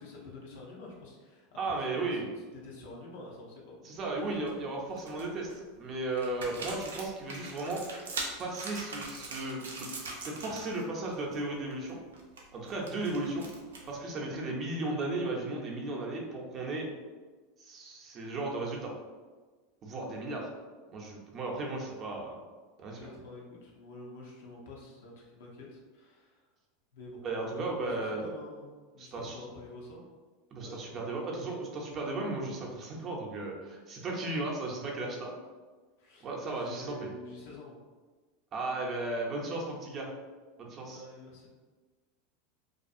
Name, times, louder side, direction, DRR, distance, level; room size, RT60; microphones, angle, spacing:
voice 1, 0.0-2.2 2.5-4.4 21.7-21.8 23.0-26.5 26.9-28.7 28.9-30.1 30.6-31.0 36.0-37.8 40.9-41.5, left 2 dB, 75° left, -2 dB, 0.7 m, -48 dB
voice 2, 1.6-2.2 3.8-7.8 8.4-9.9 10.2-12.0 12.5-13.5 13.9-16.9 17.6-18.9 19.8-20.5 20.9-22.4 22.8-23.0 27.2-28.3 29.0-29.3 30.5-35.3 36.2-37.1 38.5-40.1 40.6-41.0, right 2 dB, 40° right, -1 dB, 0.6 m, -35 dB
sound 1, 4.0-4.5 4.9-5.5 6.1-10.8 11.1-11.4 11.7-14.0, right 3 dB, 90° right, 0.4 m, -42 dB
2.4 x 2.3 x 2.5 m, 1.4 s
hypercardioid pair, 100°, 0 cm